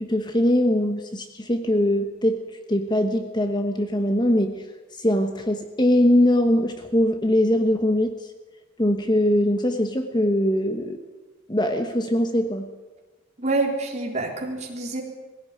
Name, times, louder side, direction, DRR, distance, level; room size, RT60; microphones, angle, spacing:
voice 1, 0.0-4.6 5.0-8.3 8.8-11.0 11.5-12.7, left 1 dB, 20° left, 6 dB, 1.1 m, -22 dB
voice 2, 13.4-15.0, right 2 dB, 35° right, 1 dB, 3.7 m, -26 dB
21.5 x 16.0 x 9.6 m, 1.3 s
head